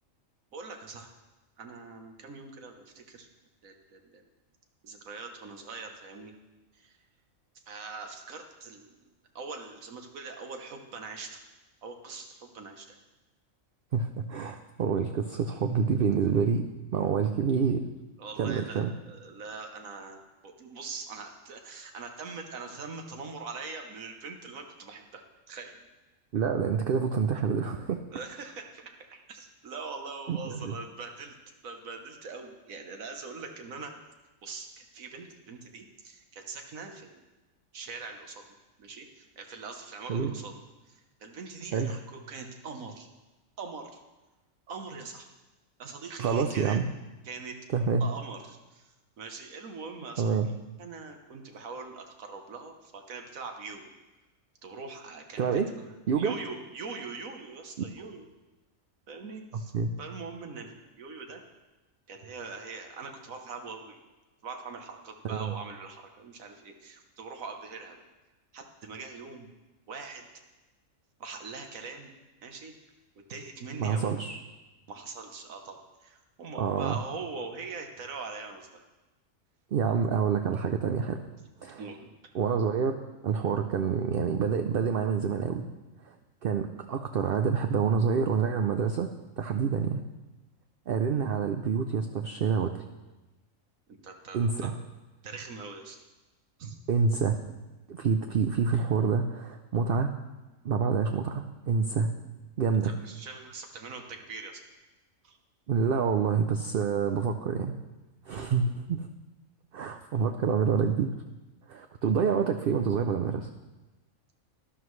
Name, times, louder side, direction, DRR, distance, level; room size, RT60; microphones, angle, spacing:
voice 1, 0.5-1.1 1.6-3.3 3.6-4.2 4.8-6.3 6.7-7.0 7.7-9.0 9.3-11.4 11.8-13.0 18.2-25.8 28.1-31.4 31.6-33.9 34.4-37.2 37.7-38.4 38.8-40.5 40.9-43.1 43.6-44.0 44.7-45.3 45.8-46.8 47.2-47.6 48.0-53.9 54.6-58.3 59.1-59.7 60.0-61.4 62.1-64.0 64.4-68.0 68.5-69.5 69.9-70.3 71.2-72.1 72.4-72.7 73.2-74.1 74.9-78.8 81.8-82.1 94.0-94.7 95.2-96.0 96.6-96.8 102.8-104.6 105.2-105.4, right 4 dB, 80° right, 4 dB, 1.5 m, -42 dB
voice 2, 13.9-16.6 16.9-17.8 18.4-18.9 26.3-28.0 30.3-30.7 40.1-40.4 41.7-42.0 46.2-46.9 47.7-48.0 50.2-50.5 55.4-55.7 56.1-56.3 57.8-58.1 59.7-59.9 65.2-65.5 73.8-74.4 76.6-77.0 79.7-81.2 81.6-81.8 82.3-83.0 83.2-85.6 86.0-86.1 86.4-90.0 90.9-92.8 94.3-94.7 96.9-97.4 97.9-100.1 100.6-102.1 102.6-102.9 105.7-107.7 108.3-109.1 109.7-111.1 111.7-113.5, right 6 dB, 60° right, 5 dB, 0.6 m, -27 dB
12.5 x 11.0 x 3.2 m, 1.1 s
omnidirectional pair, 1.4 m